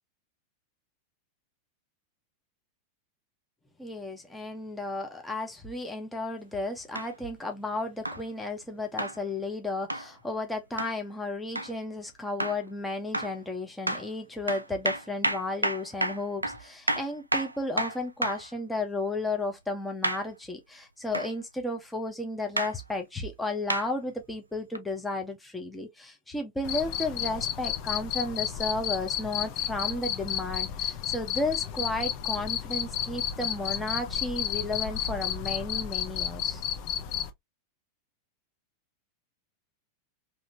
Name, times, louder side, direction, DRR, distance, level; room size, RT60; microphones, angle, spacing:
voice 1, 3.8-36.6, left 2 dB, 5° left, 0.8 m, -33 dB
sound 1, 6.9-7.1 8.0-8.2 9.0-9.2 9.9-10.1 10.8-11.0 11.5-11.7 12.4-12.6 13.1-13.4 13.9-14.1 14.5-18.5 20.0-20.3 21.1-21.3 22.6-22.7 23.7-23.9 24.7-24.8, right 1 dB, 85° right, 0.4 m, -30 dB
Cricket, 26.6-37.3, left 10 dB, 40° left, 0.6 m, -32 dB
3.0 x 2.8 x 2.6 m
figure-of-eight pair, 90°, 0 cm